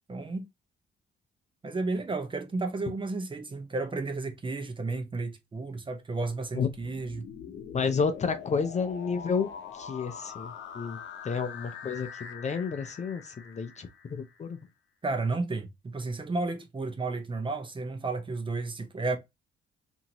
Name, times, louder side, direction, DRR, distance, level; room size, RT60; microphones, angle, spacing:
voice 1, 0.1-0.5 1.6-7.3 15.0-19.2, right 3 dB, 25° right, 0.7 m, -32 dB
sound 1, 6.7-14.4, left 7 dB, 70° left, 0.8 m, -44 dB
voice 2, 7.7-11.0 11.2-14.6, left 5 dB, 35° left, 0.5 m, -31 dB
2.8 x 2.6 x 2.8 m
cardioid pair, 90°, 20 cm